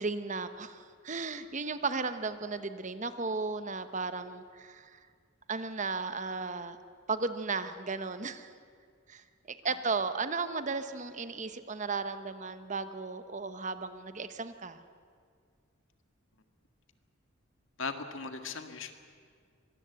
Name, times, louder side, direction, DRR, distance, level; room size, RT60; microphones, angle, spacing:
voice 1, 0.0-5.0 5.5-6.8 7.1-8.5 9.1-14.8, right 4 dB, 35° right, 11 dB, 1.0 m, -35 dB
voice 2, 17.8-18.9, left 4 dB, 65° left, 7 dB, 1.8 m, -38 dB
24.5 x 19.5 x 8.1 m, 2.1 s
head